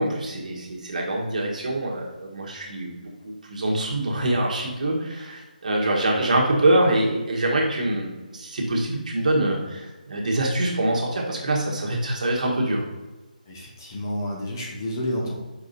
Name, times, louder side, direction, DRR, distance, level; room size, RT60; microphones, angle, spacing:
voice 1, 0.0-2.9 3.2-12.8, right 1 dB, 55° right, -1 dB, 1.5 m, -24 dB
voice 2, 13.5-15.3, equal, 25° left, -3 dB, 1.2 m, -30 dB
4.9 x 4.8 x 4.1 m, 1.1 s
hypercardioid pair, 170°, 5 cm